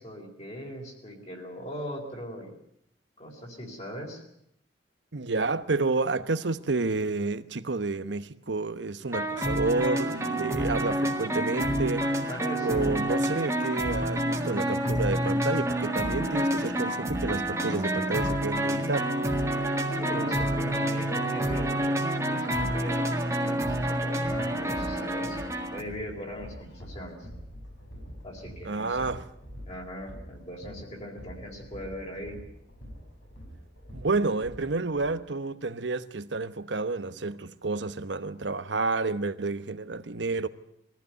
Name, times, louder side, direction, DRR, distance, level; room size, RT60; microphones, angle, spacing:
voice 1, 0.0-2.5 3.2-4.2 12.3-12.9 20.0-25.4 25.7-27.3 28.2-29.1 29.6-32.4, equal, 35° left, 4.1 m, -40 dB
voice 2, 5.1-12.3 12.6-19.1 28.6-29.2 33.9-40.5, right 3 dB, 70° right, 1.0 m, -30 dB
sound 1, 9.1-25.8, right 1 dB, 15° right, 1.8 m, -28 dB
sound 2, 24.0-35.0, equal, 80° left, 7.4 m, -46 dB
22.0 x 15.0 x 9.3 m
head